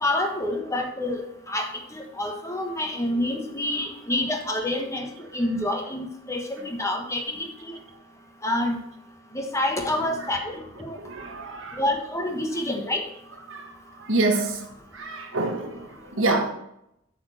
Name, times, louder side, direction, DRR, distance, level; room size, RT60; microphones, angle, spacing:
voice 1, 0.0-5.1 5.3-7.7 8.4-8.8 9.3-10.5 10.8-11.0 11.8-13.0, left 1 dB, 15° left, 1.2 m, -27 dB
voice 2, 11.0-11.8 13.5-13.7 14.0-14.7 14.9-16.5, right 2 dB, 70° right, 1.4 m, -26 dB
8.4 x 4.3 x 6.5 m
head